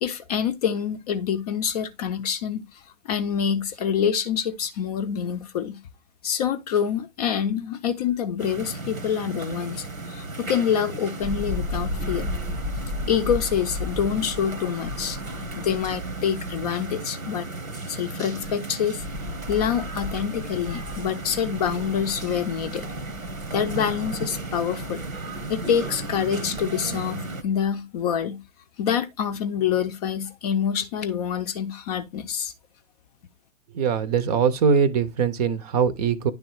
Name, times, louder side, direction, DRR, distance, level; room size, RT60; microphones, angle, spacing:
voice 1, 0.0-5.8 6.2-12.3 13.1-15.2 15.6-17.5 17.9-19.1 19.5-22.9 23.5-25.0 25.5-28.4 28.8-32.5, left 8 dB, 30° left, 0.6 m, -26 dB
sound 1, 8.4-27.4, right 2 dB, 85° right, 1.3 m, -35 dB
sound 2, 11.2-16.2 16.7-16.8 18.1-26.7 27.4-27.5, left 2 dB, 10° right, 0.4 m, -36 dB
voice 2, 33.7-36.3, right 6 dB, 30° right, 0.7 m, -22 dB
10.0 x 3.5 x 4.6 m
figure-of-eight pair, 115°, 41 cm